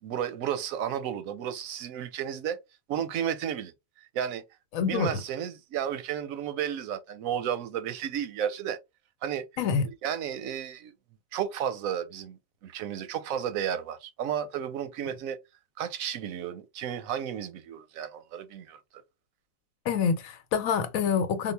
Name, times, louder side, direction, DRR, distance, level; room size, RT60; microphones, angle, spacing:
voice 1, 0.0-2.6 2.9-3.7 4.1-4.4 4.8-8.8 9.2-9.4 9.8-10.9 11.3-15.4 15.8-18.8, right 9 dB, 85° right, 1.1 m, -33 dB
voice 2, 4.7-5.2 9.6-9.8 19.9-21.5, left 6 dB, 85° left, 1.1 m, -26 dB
3.7 x 2.2 x 3.3 m
omnidirectional pair, 1.4 m